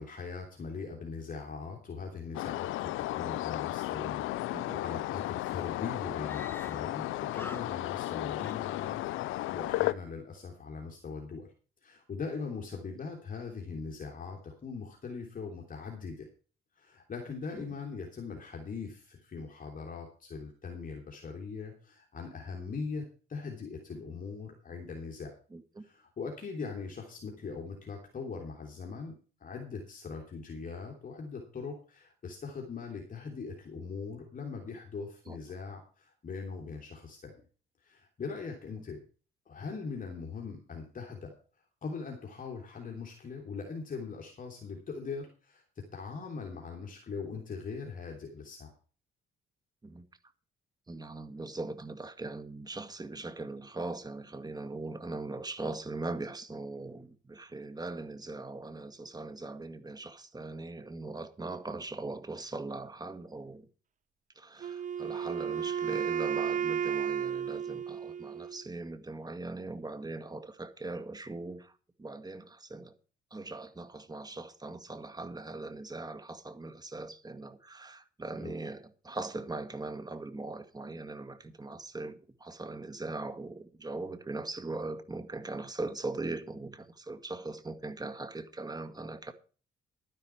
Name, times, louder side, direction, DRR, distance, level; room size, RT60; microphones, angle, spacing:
voice 1, 0.0-11.5 11.8-16.3 16.8-25.3 25.8-29.1 29.4-37.4 37.8-39.0 39.5-41.3 41.8-48.7 78.4-78.5, left 5 dB, 45° left, 3.1 m, -41 dB
sound 1, 2.3-9.9, left 16 dB, 85° left, 0.5 m, -34 dB
Screaming, 6.2-7.0 7.3-8.1 8.4-9.3, left 2 dB, 10° left, 0.9 m, -48 dB
voice 2, 25.5-25.8 35.3-35.4 49.8-50.1 50.9-63.7 64.4-71.7 72.0-72.9 73.3-89.3, right 2 dB, 20° right, 1.9 m, -40 dB
Wind instrument woodwind instrument, 64.6-68.6, right 8 dB, 40° right, 0.5 m, -33 dB
12.0 x 10.5 x 4.6 m
cardioid pair, 90°, 20 cm